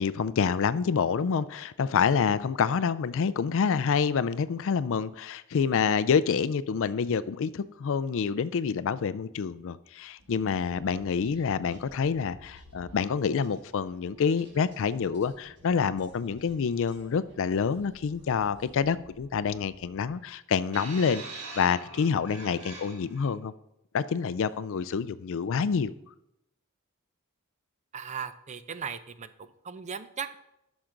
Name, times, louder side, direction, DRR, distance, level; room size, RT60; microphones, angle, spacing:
voice 1, 0.0-23.5 23.9-25.9, left 6 dB, 60° left, 16 dB, 0.4 m, -27 dB
sound 1, 10.2-20.4, equal, 55° right, 1.6 m, -55 dB
sound 2, 20.7-23.3 24.2-24.4, right 2 dB, 80° right, 3.4 m, -43 dB
voice 2, 27.9-29.3 29.6-30.4, right 6 dB, 30° right, 12 dB, 0.5 m, -37 dB
11.5 x 6.3 x 3.8 m, 0.83 s
head